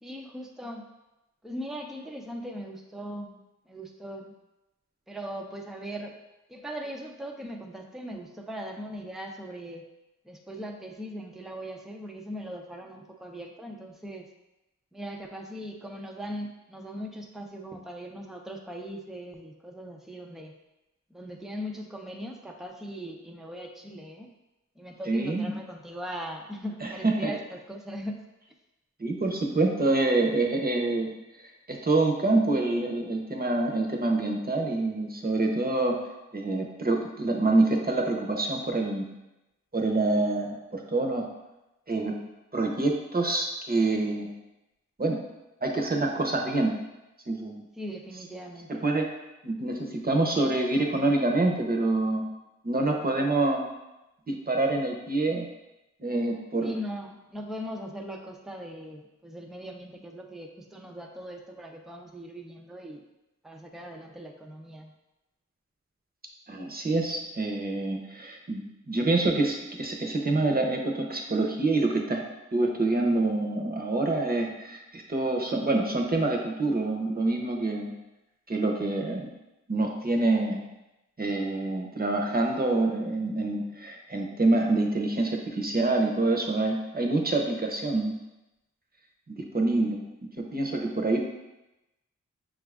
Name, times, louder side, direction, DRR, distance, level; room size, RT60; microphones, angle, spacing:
voice 1, 0.0-0.9 1.4-3.4 3.7-4.3 5.1-6.2 6.5-9.8 10.2-14.3 14.9-20.5 21.1-24.3 24.8-28.2 47.8-48.9 56.6-63.0 63.4-64.9, equal, ahead, 1 dB, 0.6 m, -39 dB
voice 2, 25.1-25.5 26.8-26.9 27.2-27.3 29.0-31.1 31.7-36.0 36.3-39.1 39.7-41.3 41.9-42.1 42.5-44.3 45.0-45.2 45.6-46.7 47.3-47.6 48.8-49.1 49.4-52.2 52.6-53.7 54.3-55.5 56.0-56.7 66.5-72.2 72.5-77.9 78.5-79.3 79.7-80.6 81.2-88.2 89.3-90.0 90.4-91.2, right 2 dB, 30° right, 1 dB, 0.9 m, -26 dB
5.9 x 2.5 x 3.5 m, 0.98 s
cardioid pair, 50°, 31 cm